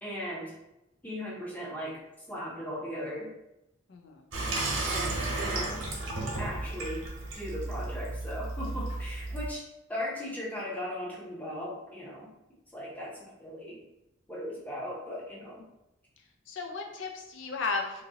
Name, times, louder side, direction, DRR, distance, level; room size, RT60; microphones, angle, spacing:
voice 1, 0.0-0.5 1.0-1.9 2.3-3.3 4.9-5.7 6.4-7.0 7.3-9.6 9.9-12.3 12.7-13.8 14.3-15.6, equal, 10° left, -5 dB, 0.7 m, -37 dB
voice 2, 3.9-4.2 16.5-18.0, left 4 dB, 65° left, 3 dB, 0.5 m, -34 dB
Water tap faucet / Sink (filling or washing), 4.3-9.5, right 2 dB, 85° right, 0.9 m, -33 dB
2.7 x 2.6 x 2.8 m, 0.92 s
head